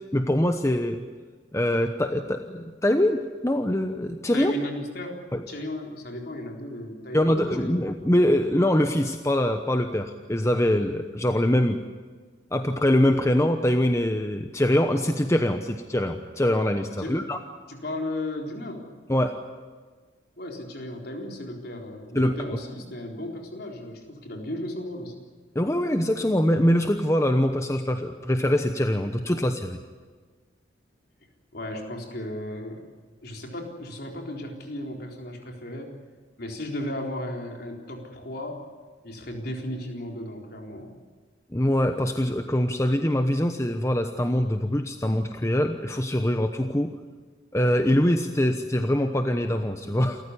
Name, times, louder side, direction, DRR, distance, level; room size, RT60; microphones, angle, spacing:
voice 1, 0.1-1.0 1.5-4.5 5.3-5.4 7.1-11.8 12.5-17.4 19.1-19.4 22.1-22.3 25.5-29.8 41.5-46.9 47.5-50.2, left 1 dB, 15° left, 6 dB, 1.0 m, -23 dB
voice 2, 4.3-5.2 5.5-7.8 17.0-17.2 17.7-18.8 20.4-25.1 31.5-32.8 33.2-35.9 36.4-38.7 39.0-40.9, left 1 dB, 55° left, 1 dB, 4.1 m, -35 dB
28.5 x 14.5 x 9.9 m, 1.5 s
head